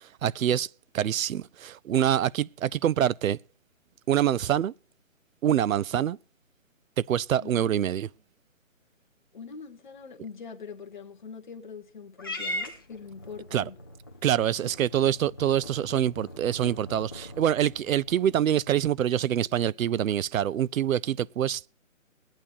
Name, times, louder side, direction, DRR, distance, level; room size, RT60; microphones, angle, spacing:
voice 1, 0.2-0.7 0.9-3.4 4.1-4.7 5.4-6.2 7.0-8.1 13.5-13.6 14.2-21.7, right 10 dB, 80° right, 0.5 m, -25 dB
voice 2, 7.4-7.7 9.3-13.7, left 5 dB, 35° left, 1.2 m, -43 dB
Purr / Meow, 12.2-18.7, left 1 dB, 15° left, 0.7 m, -40 dB
22.0 x 8.9 x 2.7 m
hypercardioid pair, 170°, 40 cm